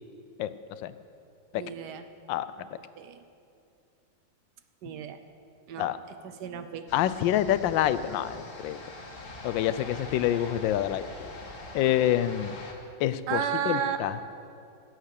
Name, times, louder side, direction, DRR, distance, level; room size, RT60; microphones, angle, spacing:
voice 1, 1.5-2.0 3.0-3.2 4.8-5.2 5.7-5.9 6.2-6.8 13.3-14.0, right 9 dB, 70° right, 9 dB, 1.2 m, -32 dB
voice 2, 6.9-8.8 9.4-11.0 11.7-12.5 13.0-13.4 13.7-14.2, left 11 dB, 85° left, 14 dB, 1.3 m, -26 dB
sound 1, 6.9-12.7, left 2 dB, 45° left, 1.5 m, -44 dB
16.0 x 8.1 x 6.5 m, 2.6 s
omnidirectional pair, 2.0 m